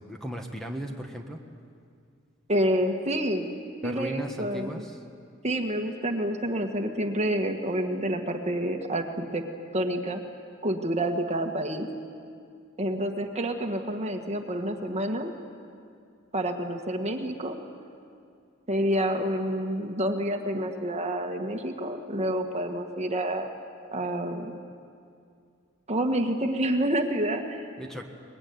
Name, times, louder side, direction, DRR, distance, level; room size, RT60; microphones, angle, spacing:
voice 1, 0.0-1.4 3.8-5.0 27.8-28.1, equal, ahead, 2 dB, 1.6 m, -36 dB
voice 2, 2.5-3.5 3.8-4.8 5.4-9.4 9.7-10.2 10.6-11.9 12.8-15.3 16.3-17.6 18.7-23.5 23.9-24.6 25.9-27.6, right 1 dB, 30° right, 4 dB, 1.7 m, -28 dB
23.5 x 21.0 x 9.5 m, 2.3 s
head